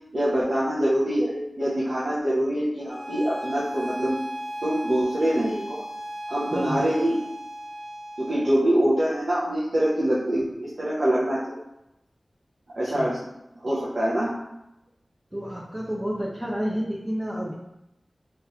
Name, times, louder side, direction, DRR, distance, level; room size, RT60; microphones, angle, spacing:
voice 1, 0.1-4.2 4.6-5.8 6.3-7.2 8.2-11.6 12.7-13.2 13.6-14.3, right 1 dB, 65° right, -8 dB, 0.6 m, -24 dB
Bowed string instrument, 2.9-8.5, equal, 35° left, 0.5 m, -36 dB
voice 2, 6.5-6.9 12.8-13.1 15.3-17.5, equal, 20° right, -5 dB, 0.5 m, -30 dB
3.0 x 2.4 x 2.4 m, 0.86 s
wide cardioid pair, 65°, 0 cm